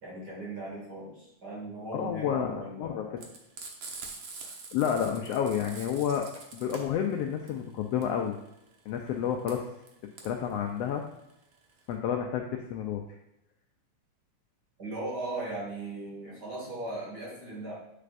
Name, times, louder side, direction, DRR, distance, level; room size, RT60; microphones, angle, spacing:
voice 1, 0.0-3.3 14.8-17.7, right 2 dB, 35° right, -4 dB, 2.6 m, -38 dB
voice 2, 1.9-3.0 4.4-6.2 6.5-8.4 8.9-9.7 10.2-11.0 11.9-13.0, left 8 dB, 80° left, 3 dB, 1.4 m, -30 dB
Frying (food), 3.2-11.9, right 4 dB, 60° right, 1.4 m, -45 dB
9.4 x 6.6 x 2.6 m, 0.85 s
omnidirectional pair, 3.3 m